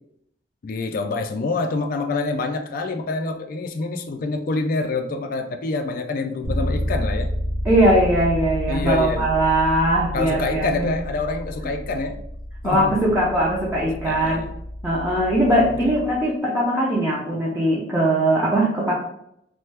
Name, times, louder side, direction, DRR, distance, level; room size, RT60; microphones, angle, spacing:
voice 1, 0.6-7.3 8.7-9.3 10.1-12.2 12.6-13.1 14.0-14.5 15.3-15.8, left 3 dB, 50° left, 4 dB, 0.3 m, -26 dB
Bass guitar, 6.4-16.3, equal, 80° right, 1.0 m, -30 dB
voice 2, 7.6-10.9 12.6-14.4 14.8-18.9, right 1 dB, 15° right, -6 dB, 0.6 m, -20 dB
3.1 x 2.2 x 3.3 m, 0.73 s
head